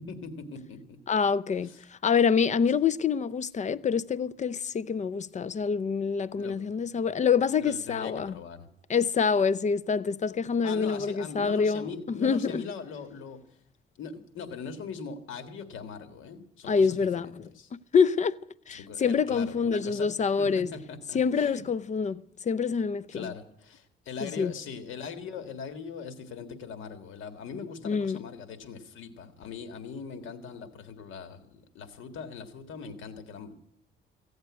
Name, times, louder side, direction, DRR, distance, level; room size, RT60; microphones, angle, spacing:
voice 1, 0.0-1.0 1.6-1.8 6.3-6.6 7.6-8.7 10.6-13.4 14.0-17.7 18.7-20.1 20.4-21.6 23.1-33.5, left 5 dB, 85° left, 1.8 m, -41 dB
voice 2, 1.1-8.3 8.9-12.6 16.7-17.5 17.9-18.4 18.7-20.7 21.1-23.3 24.2-24.5 27.8-28.2, left 6 dB, 35° left, 0.5 m, -26 dB
16.0 x 8.0 x 9.5 m
cardioid pair, 90°, 20 cm